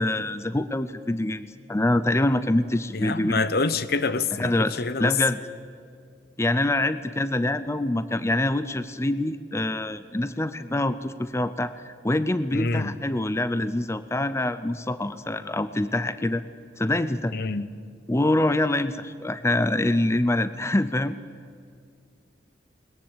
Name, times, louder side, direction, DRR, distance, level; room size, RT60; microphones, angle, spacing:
voice 1, 0.0-3.4 4.4-5.4 6.4-16.4 16.8-17.3 18.1-21.2, left 1 dB, 15° left, 13 dB, 0.6 m, -25 dB
voice 2, 2.9-5.1 12.5-12.9 17.3-17.7, left 3 dB, 60° left, 14 dB, 0.9 m, -26 dB
21.0 x 21.0 x 8.9 m, 2.2 s
head